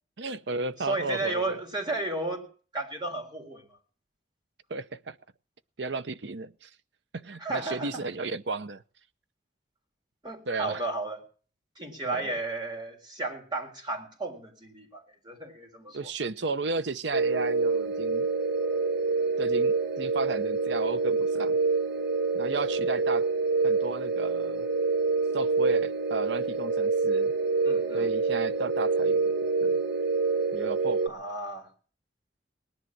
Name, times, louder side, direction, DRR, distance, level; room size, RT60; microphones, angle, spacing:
voice 1, 0.2-1.6 4.7-5.2 5.8-6.7 7.1-8.8 10.5-10.8 12.1-12.3 15.9-18.3 19.4-21.6 22.3-23.3 23.6-24.7 25.3-27.3 27.9-29.3 29.6-29.8 30.5-31.2, right 3 dB, 85° right, 0.8 m, -33 dB
voice 2, 0.8-2.5 2.7-3.7 7.4-8.0 10.2-11.2 11.8-16.1 27.6-28.1 31.0-31.7, right 2 dB, 25° right, 3.9 m, -33 dB
sound 1, 17.1-31.1, right 4 dB, 70° right, 1.3 m, -26 dB
19.5 x 10.5 x 6.2 m
head